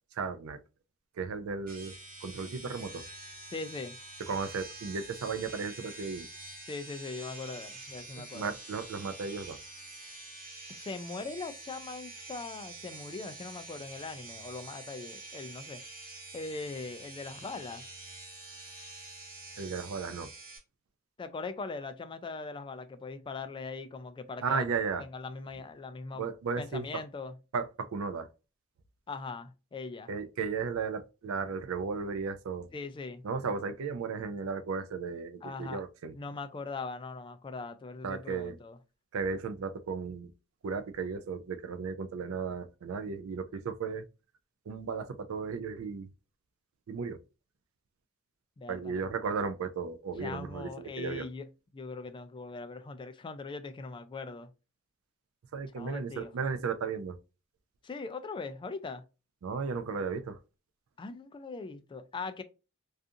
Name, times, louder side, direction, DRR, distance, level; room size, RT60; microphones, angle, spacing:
voice 1, 0.1-0.6 1.2-3.1 4.2-6.3 8.1-9.6 19.6-20.3 24.4-25.0 26.1-27.0 27.5-28.3 30.1-32.7 33.2-36.1 38.0-38.6 39.1-40.3 40.6-44.0 44.7-46.1 46.9-47.2 48.7-51.3 55.5-57.2 59.4-60.4, right 5 dB, 75° right, 0.4 m, -35 dB
sound 1, 1.7-20.6, right 2 dB, 45° right, 1.0 m, -47 dB
voice 2, 3.5-4.0 6.7-8.5 10.7-15.8 16.3-17.9 21.2-24.6 25.1-26.3 26.6-27.3 29.1-30.1 32.7-33.2 35.4-35.8 36.1-38.8 48.6-49.0 50.2-54.5 55.8-56.3 57.8-59.0 61.0-62.4, left 4 dB, 25° left, 0.3 m, -40 dB
2.4 x 2.4 x 2.6 m
head